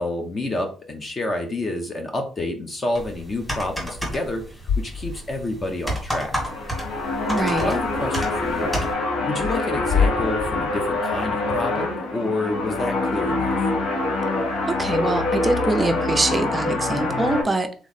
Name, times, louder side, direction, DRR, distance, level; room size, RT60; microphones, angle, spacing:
voice 1, 0.0-6.4 7.6-8.8 9.2-13.6, left 2 dB, 25° left, 5 dB, 0.7 m, -29 dB
sound 1, 3.0-8.9, equal, 10° left, 1.9 m, -31 dB
sound 2, 4.7-5.7 6.0-6.1 9.3-11.3, left 6 dB, 55° left, 0.3 m, -26 dB
sound 3, 6.3-17.4, left 2 dB, 75° left, 1.2 m, -25 dB
voice 2, 7.3-7.8 14.6-17.7, right 2 dB, 15° right, 7 dB, 0.5 m, -24 dB
3.5 x 3.1 x 4.0 m, 0.39 s
cardioid pair, 155°, 0 cm